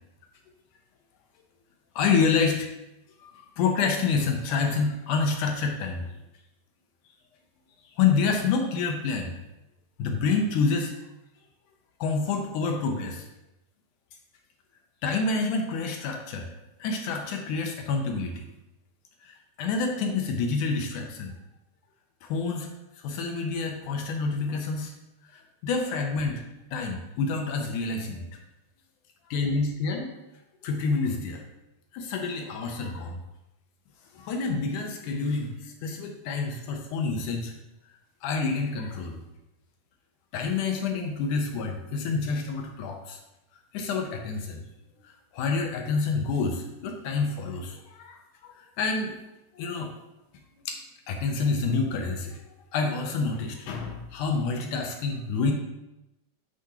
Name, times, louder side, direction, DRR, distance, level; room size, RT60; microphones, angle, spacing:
voice 1, 2.0-2.7 3.2-6.1 8.0-9.4 10.0-10.9 12.0-13.3 15.0-16.5 16.8-18.5 19.2-21.3 22.2-22.7 23.0-24.9 25.3-26.4 26.7-28.2 29.3-30.1 30.6-31.4 31.9-33.2 34.1-37.5 38.2-39.2 40.3-43.2 43.7-44.6 45.0-49.1 49.5-49.9 50.7-50.8 51.1-52.4 52.7-55.5, left 4 dB, 70° left, 3 dB, 2.0 m, -28 dB
12.0 x 5.1 x 2.9 m, 0.93 s
omnidirectional pair, 4.3 m